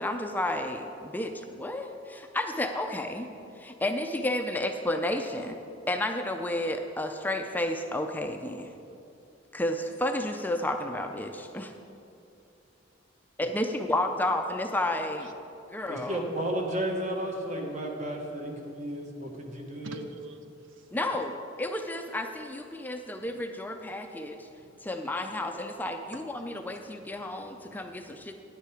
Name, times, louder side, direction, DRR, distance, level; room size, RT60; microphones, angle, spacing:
voice 1, 0.0-3.3 3.6-5.6 5.9-8.7 9.5-11.7 13.4-15.3 15.7-16.2 20.9-24.5 24.8-28.3, left 1 dB, 10° left, 5 dB, 0.5 m, -31 dB
voice 2, 15.9-20.0, right 1 dB, 40° right, 1 dB, 1.4 m, -33 dB
voice 3, 19.8-20.9 24.5-24.9 26.1-26.5 27.2-28.3, right 2 dB, 80° right, 8 dB, 0.6 m, -49 dB
10.0 x 9.4 x 4.9 m, 2.6 s
head